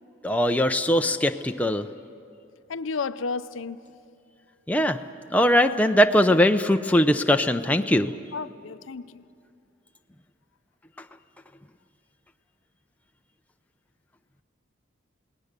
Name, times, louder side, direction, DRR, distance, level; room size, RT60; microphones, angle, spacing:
voice 1, 0.2-1.9 4.7-5.0 5.3-8.1, equal, 5° left, 0.5 m, -21 dB
voice 2, 2.7-3.8 5.6-5.8 6.3-6.4 8.3-9.2, left 4 dB, 75° left, 0.6 m, -32 dB
29.5 x 18.5 x 6.7 m
head